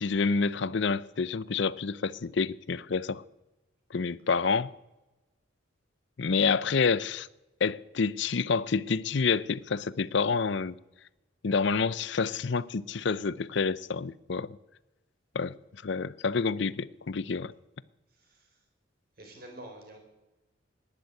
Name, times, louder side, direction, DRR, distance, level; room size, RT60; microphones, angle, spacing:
voice 1, 0.0-3.2 3.9-4.7 6.2-7.3 7.6-10.7 11.4-14.6 15.3-15.5 15.8-17.5, left 5 dB, 60° left, 0.5 m, -28 dB
voice 2, 18.2-18.5 19.2-20.0, right 1 dB, 50° right, 4.6 m, -47 dB
15.0 x 11.0 x 9.0 m
head